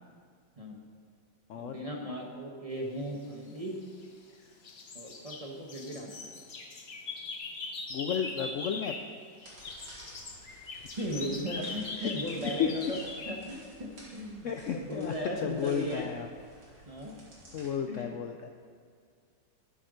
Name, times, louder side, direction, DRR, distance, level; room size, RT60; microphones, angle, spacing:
voice 1, 1.5-3.8 4.9-6.3 11.0-13.0 13.3-16.1 16.9-17.2 17.9-18.1, equal, 25° right, 0 dB, 1.0 m, -37 dB
sound 1, 3.5-4.3 4.6-9.2 9.4-13.4, left 3 dB, 45° left, 1.0 m, -41 dB
voice 2, 7.9-9.0 12.0-12.1 12.4-12.7 14.4-15.1 15.4-16.3 17.5-18.5, left 8 dB, 85° left, 5 dB, 0.6 m, -33 dB
sound 2, 9.4-17.7, right 1 dB, 70° right, 3.2 m, -53 dB
12.0 x 8.6 x 5.1 m, 2.1 s
omnidirectional pair, 1.9 m